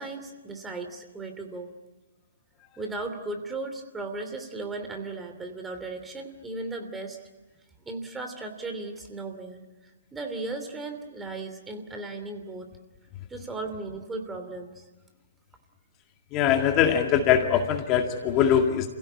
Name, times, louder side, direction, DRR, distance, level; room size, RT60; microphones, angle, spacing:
voice 1, 0.0-1.7 2.8-7.2 7.8-9.6 10.1-12.7 13.3-14.8, right 3 dB, 10° right, 5 dB, 2.9 m, -36 dB
voice 2, 16.3-18.9, left 9 dB, 30° left, 4 dB, 2.1 m, -22 dB
28.0 x 16.5 x 9.9 m, 1.2 s
figure-of-eight pair, 125°, 0 cm